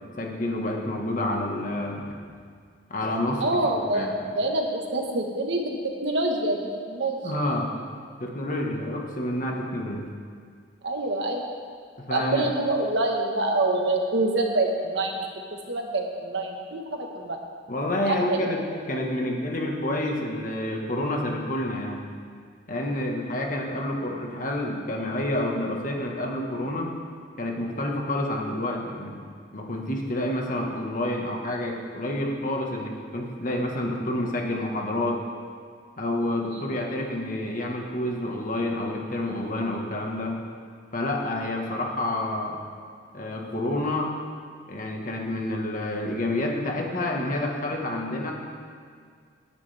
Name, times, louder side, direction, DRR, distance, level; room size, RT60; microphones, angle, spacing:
voice 1, 0.0-2.1 2.9-4.1 7.2-7.7 8.2-10.0 12.1-12.5 17.7-18.6 18.9-22.0 22.7-26.9 27.4-29.2 29.5-35.2 36.0-40.3 40.9-42.6 43.1-44.1 44.7-48.3, left 1 dB, 45° left, 0 dB, 1.6 m, -28 dB
voice 2, 3.4-5.8 6.0-7.2 10.8-11.4 12.1-17.4 18.1-18.5 36.5-36.6, right 2 dB, 75° right, 1 dB, 1.5 m, -26 dB
18.0 x 10.0 x 3.5 m, 2.1 s
head